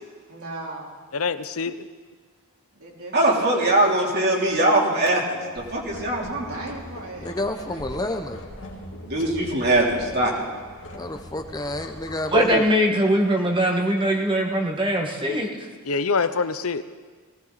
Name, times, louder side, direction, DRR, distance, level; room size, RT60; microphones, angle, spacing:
voice 1, 0.3-0.9 2.7-3.5 3.8-4.0 6.4-8.2, right 2 dB, 80° right, -3 dB, 3.9 m, -39 dB
voice 2, 1.1-1.9 15.8-16.8, left 4 dB, 75° left, 12 dB, 0.8 m, -25 dB
voice 3, 3.1-6.6 9.0-10.5, right 1 dB, 50° right, -2 dB, 3.2 m, -22 dB
sound 1, 5.6-12.5, left 1 dB, 60° left, 2.1 m, -40 dB
voice 4, 7.2-8.5 10.9-12.6, left 1 dB, 20° left, 6 dB, 0.7 m, -30 dB
voice 5, 12.3-15.5, equal, 25° right, 2 dB, 1.6 m, -21 dB
19.5 x 17.5 x 4.0 m, 1.5 s
head